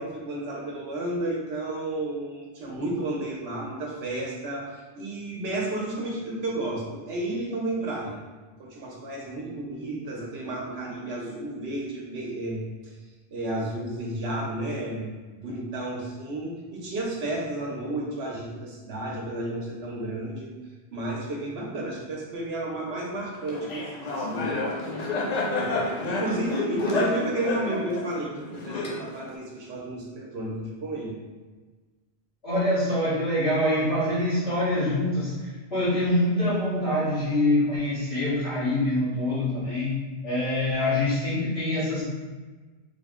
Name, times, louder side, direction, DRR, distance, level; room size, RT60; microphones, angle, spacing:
voice 1, 0.0-8.2 8.6-12.6 13.3-20.5 20.9-24.5 25.6-31.2, right 2 dB, 75° right, -2 dB, 1.0 m, -32 dB
Laughter, 23.5-29.4, left 2 dB, 50° left, 0.5 m, -29 dB
voice 2, 32.4-39.9 40.2-42.0, left 1 dB, 80° left, -11 dB, 1.9 m, -25 dB
3.7 x 2.1 x 3.6 m, 1.3 s
omnidirectional pair, 1.1 m